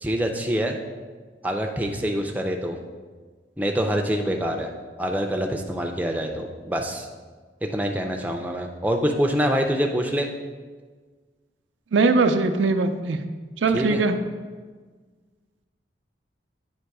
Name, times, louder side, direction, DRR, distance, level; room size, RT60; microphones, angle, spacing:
voice 1, 0.0-0.8 1.4-2.8 3.6-4.7 5.0-7.1 7.6-10.3 13.7-14.0, equal, 10° right, 2 dB, 0.4 m, -25 dB
voice 2, 11.9-13.2 13.6-14.2, right 3 dB, 85° right, 7 dB, 0.5 m, -20 dB
8.8 x 3.0 x 4.7 m, 1.4 s
head